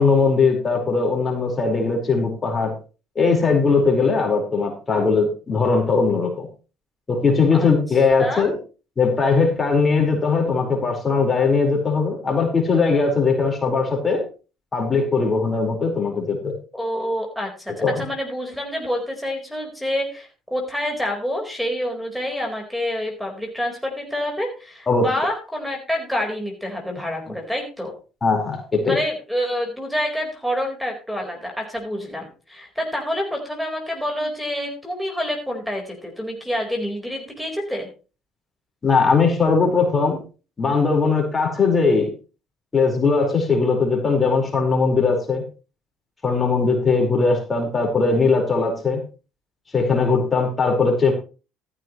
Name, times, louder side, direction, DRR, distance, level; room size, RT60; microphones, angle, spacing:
voice 1, 0.0-2.8 3.1-6.5 7.1-8.6 9.0-14.3 14.7-16.6 17.8-18.0 24.9-25.1 28.2-29.0 38.8-40.2 40.6-42.1 42.7-45.4 46.2-49.0 49.7-51.1, left 4 dB, 30° left, 2 dB, 4.8 m, -19 dB
voice 2, 8.2-8.5 16.7-27.9 28.8-37.9, equal, ahead, 0 dB, 4.5 m, -27 dB
14.0 x 12.5 x 3.2 m, 0.34 s
hypercardioid pair, 60°, 0 cm